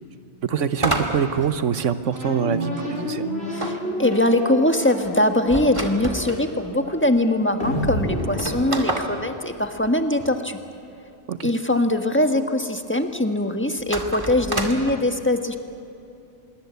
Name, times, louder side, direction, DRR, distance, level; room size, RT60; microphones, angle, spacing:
voice 1, 0.4-3.3 11.3-11.5, right 7 dB, 80° right, 12 dB, 1.3 m, -25 dB
sound 1, 0.8-2.3 3.6-6.4 7.2-7.3 7.5-7.6 8.2-10.4 13.8-14.9, right 2 dB, 25° right, 2.3 m, -29 dB
sound 2, 2.1-9.6, equal, 55° left, 5.6 m, -30 dB
voice 2, 3.5-10.6 11.4-15.6, left 1 dB, 10° left, 6 dB, 1.5 m, -22 dB
26.0 x 23.0 x 8.3 m, 2.7 s
omnidirectional pair, 1.3 m